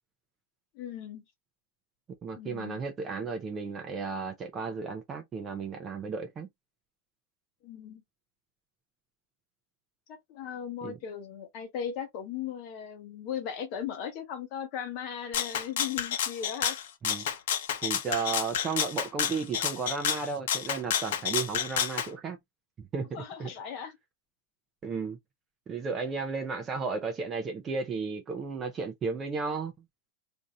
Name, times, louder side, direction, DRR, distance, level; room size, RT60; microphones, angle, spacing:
voice 1, 0.7-1.2 2.4-2.8 7.6-8.0 10.1-16.8 17.2-17.3 23.1-24.0, left 8 dB, 35° left, 0.9 m, -37 dB
voice 2, 2.2-6.5 10.8-11.0 17.0-17.3 17.8-22.4 22.8-23.5 24.8-25.2 25.7-29.7, right 5 dB, 15° right, 0.4 m, -34 dB
Rattle (instrument), 15.3-22.1, left 9 dB, 60° left, 0.7 m, -30 dB
2.6 x 2.4 x 4.1 m
supercardioid pair, 180°, 0 cm